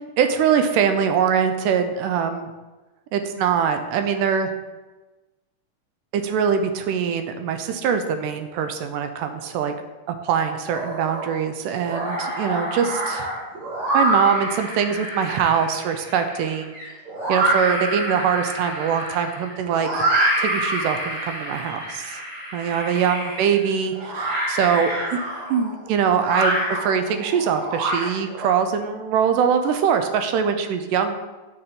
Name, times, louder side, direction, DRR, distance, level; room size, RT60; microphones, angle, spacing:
voice 1, 0.2-2.5 3.1-4.5 6.1-9.7 10.1-13.3 13.9-16.7 17.3-20.1 20.4-22.2 22.5-25.2 25.5-31.2, right 7 dB, 80° right, 7 dB, 2.1 m, -23 dB
sound 1, 10.7-11.4 11.7-28.5, right 1 dB, 55° right, 2.8 m, -26 dB
7.7 x 5.6 x 3.7 m, 1.2 s
omnidirectional pair, 3.9 m